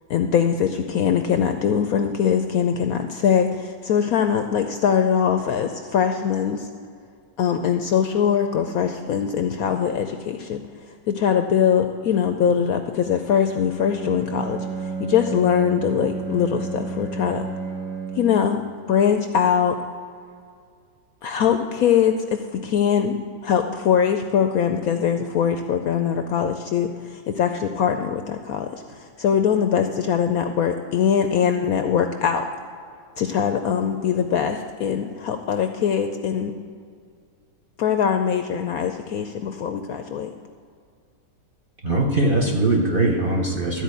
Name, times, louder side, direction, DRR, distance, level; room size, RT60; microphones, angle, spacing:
voice 1, 0.1-6.7 7.4-10.6 11.1-17.4 18.2-18.6 18.9-19.8 21.2-23.2 23.4-32.5 33.2-36.5 37.8-40.3, left 8 dB, 70° left, 6 dB, 0.8 m, -22 dB
Bowed string instrument, 13.4-18.5, right 4 dB, 75° right, 2.1 m, -31 dB
voice 2, 41.8-43.8, right 2 dB, 40° right, 0 dB, 0.8 m, -21 dB
13.0 x 4.5 x 8.2 m, 2.2 s
omnidirectional pair, 1.9 m